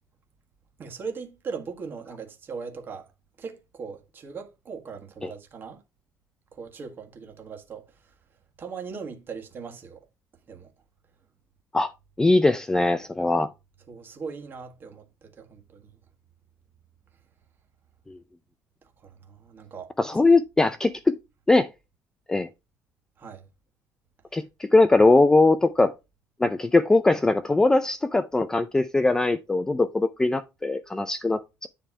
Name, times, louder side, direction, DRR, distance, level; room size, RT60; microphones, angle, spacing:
voice 1, 0.8-3.1 3.4-5.8 6.5-7.9 8.6-10.0 10.5-10.7 13.9-15.9 19.0-20.3 23.2-23.5, right 5 dB, 30° right, 1.7 m, -39 dB
voice 2, 12.2-13.5 18.1-18.2 20.0-21.1 21.5-21.7 22.3-22.5 24.3-25.9 26.4-31.7, left 2 dB, 10° left, 0.4 m, -21 dB
10.0 x 3.4 x 4.7 m
cardioid pair, 175°, 7 cm